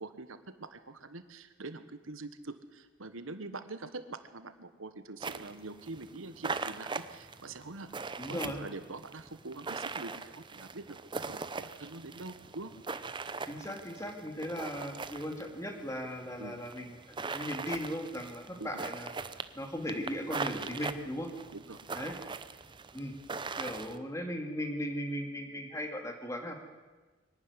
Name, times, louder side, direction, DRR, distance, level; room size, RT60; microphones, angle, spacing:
voice 1, 0.0-12.7 16.4-16.6 18.6-18.8 21.5-21.8, right 2 dB, 80° right, 10 dB, 1.4 m, -44 dB
sound 1, 5.2-24.0, right 4 dB, 25° right, 0.7 m, -41 dB
voice 2, 8.2-8.6 13.5-17.0 17.3-19.1 19.5-21.3 21.9-22.1 22.9-23.1 23.6-26.5, equal, 15° left, 3 dB, 2.5 m, -37 dB
23.5 x 12.0 x 9.9 m, 1.3 s
head